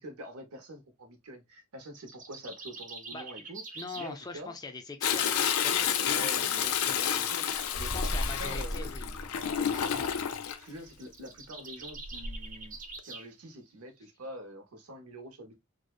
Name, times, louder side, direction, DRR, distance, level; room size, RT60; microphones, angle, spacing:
voice 1, 0.0-4.6 6.0-7.4 7.7-8.9 10.6-15.6, right 1 dB, 90° right, 0.8 m, -45 dB
sound 1, 1.8-4.2 10.8-13.3, right 3 dB, 35° right, 0.5 m, -45 dB
voice 2, 3.7-7.3 7.9-10.3, left 3 dB, 20° left, 0.4 m, -43 dB
Toilet flush, 5.0-10.6 12.0-12.5 13.0-13.1, left 8 dB, 90° left, 0.4 m, -30 dB
sound 2, 7.5-10.0, equal, 15° right, 0.8 m, -35 dB
2.6 x 2.1 x 2.3 m
head